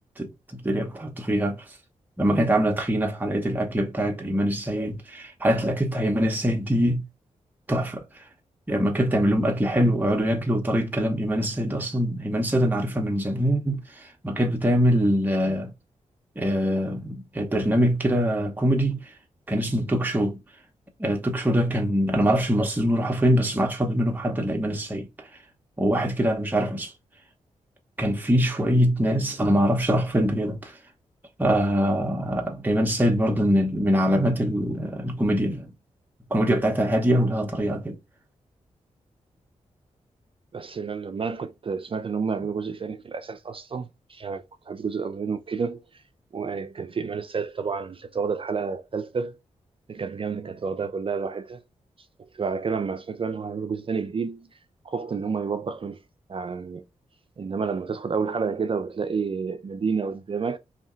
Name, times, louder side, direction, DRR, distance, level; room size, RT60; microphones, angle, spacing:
voice 1, 0.0-1.6 2.2-7.1 7.7-8.3 8.7-15.7 16.4-19.1 19.5-20.4 21.0-25.3 25.8-26.9 28.0-30.8 31.4-35.7 36.3-38.0, equal, 15° right, 0.8 m, -23 dB
voice 2, 40.5-45.8 46.3-49.4 49.9-51.6 52.3-54.5 54.8-56.0 56.3-56.8 57.4-60.6, right 5 dB, 40° right, 0.4 m, -30 dB
2.8 x 2.1 x 3.7 m
supercardioid pair, 45°, 13 cm